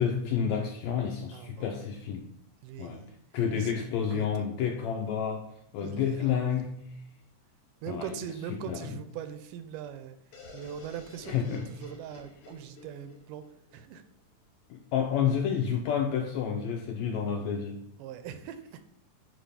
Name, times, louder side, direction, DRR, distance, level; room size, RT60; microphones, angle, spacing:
voice 1, 0.0-2.3 2.8-3.1 3.3-5.5 5.7-7.0 7.9-8.1 8.5-8.9 11.3-11.7 14.7-17.8, left 7 dB, 85° left, 3 dB, 1.6 m, -30 dB
voice 2, 1.3-1.7 2.6-3.1 3.5-4.3 5.8-6.4 7.8-10.2 10.5-13.5 13.7-14.0 18.0-18.8, right 8 dB, 90° right, 10 dB, 2.2 m, -41 dB
sound 1, 10.3-14.1, left 3 dB, 60° left, 3.1 m, -51 dB
8.6 x 3.0 x 5.6 m, 0.71 s
omnidirectional pair, 3.7 m